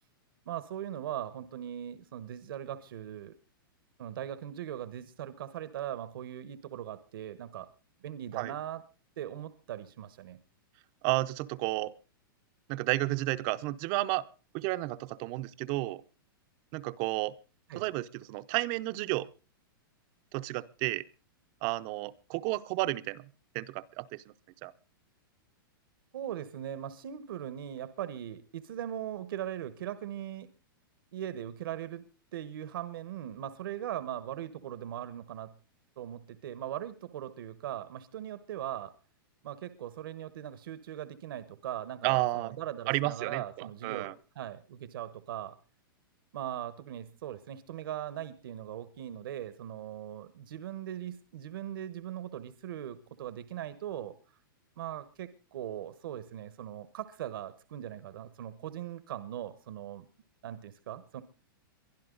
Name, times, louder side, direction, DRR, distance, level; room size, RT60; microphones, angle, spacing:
voice 1, 0.4-3.3 4.0-7.7 8.0-8.8 9.2-10.4 17.7-17.8 26.1-30.5 31.1-32.0 32.3-35.5 36.0-38.9 39.4-45.5 46.3-54.1 54.8-60.1 60.4-61.2, right 11 dB, 70° right, 14 dB, 1.3 m, -40 dB
voice 2, 11.0-11.9 12.7-14.2 14.5-16.0 16.7-17.4 17.7-19.3 20.3-21.0 21.6-23.2 23.5-24.2 24.6-24.7 42.0-42.6 42.9-44.1, right 19 dB, 40° right, 14 dB, 0.8 m, -32 dB
22.5 x 12.0 x 3.9 m, 0.34 s
hypercardioid pair, 145°, 12 cm